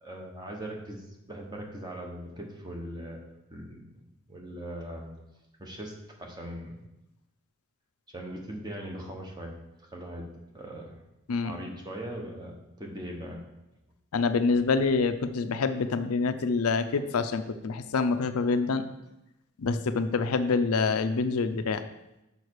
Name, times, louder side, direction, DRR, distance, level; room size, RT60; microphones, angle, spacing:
voice 1, 0.0-3.2 3.5-3.9 4.3-5.1 5.6-6.9 8.1-9.5 9.9-10.3 10.5-10.9 11.4-13.4, right 1 dB, 20° right, 0 dB, 1.1 m, -40 dB
voice 2, 14.1-18.9 19.6-21.8, left 4 dB, 85° left, 10 dB, 0.5 m, -26 dB
6.5 x 5.4 x 4.7 m, 0.92 s
head